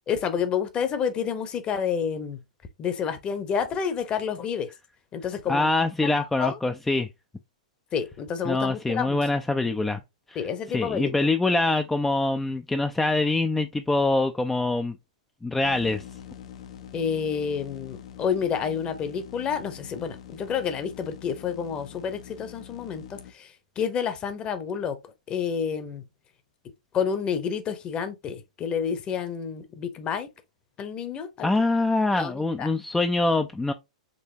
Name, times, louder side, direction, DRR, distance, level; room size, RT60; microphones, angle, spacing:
voice 1, 0.1-2.4 2.8-4.7 5.1-5.7 6.0-6.6 7.9-9.2 10.3-11.1 16.9-25.0 25.3-26.0 26.9-30.3 30.8-31.5 32.2-32.7, left 7 dB, 25° left, 0.9 m, -29 dB
voice 2, 5.5-7.1 8.4-10.0 10.3-14.9 15.4-16.1 31.4-33.7, left 2 dB, 5° left, 0.4 m, -24 dB
sound 1, 15.6-23.3, left 9 dB, 55° left, 0.7 m, -44 dB
5.4 x 3.5 x 2.8 m
figure-of-eight pair, 105°, 4 cm